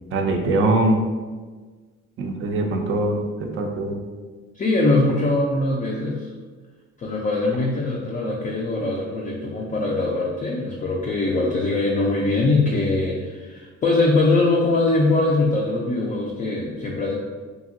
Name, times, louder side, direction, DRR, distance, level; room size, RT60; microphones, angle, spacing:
voice 1, 0.1-1.0 2.2-3.2 3.5-4.0, right 2 dB, 45° right, 2 dB, 0.4 m, -22 dB
voice 2, 4.5-6.3 7.0-17.2, left 2 dB, 25° left, -2 dB, 0.3 m, -22 dB
2.8 x 2.6 x 2.5 m, 1.4 s
cardioid pair, 90°, 30 cm